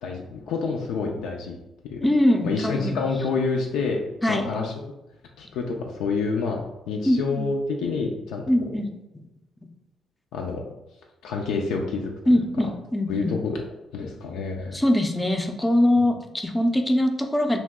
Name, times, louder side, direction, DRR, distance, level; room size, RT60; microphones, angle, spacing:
voice 1, 0.0-1.6 1.8-2.0 2.4-4.0 4.3-4.7 5.4-8.4 10.3-10.6 11.2-12.1 13.1-13.6 13.9-14.8, left 4 dB, 90° left, 0 dB, 0.4 m, -28 dB
voice 2, 2.0-3.0 4.2-4.5 7.0-7.5 8.5-8.9 12.3-13.3 14.7-17.6, left 1 dB, 10° left, 5 dB, 0.4 m, -22 dB
3.0 x 2.3 x 3.5 m, 0.95 s
cardioid pair, 90°, 0 cm